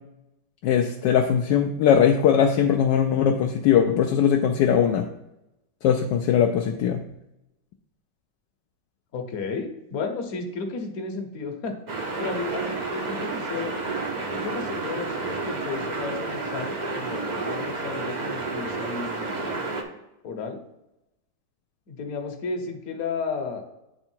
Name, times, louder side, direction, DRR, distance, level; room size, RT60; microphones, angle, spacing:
voice 1, 0.6-5.1 5.8-7.0, left 8 dB, 75° left, 4 dB, 1.2 m, -20 dB
voice 2, 9.1-11.8 12.2-13.8 14.3-19.7 20.2-20.6 21.9-23.6, left 4 dB, 55° left, 4 dB, 1.3 m, -33 dB
sound 1, 11.9-19.8, right 3 dB, 50° right, 0.5 m, -30 dB
8.7 x 3.5 x 4.5 m, 0.90 s
omnidirectional pair, 2.0 m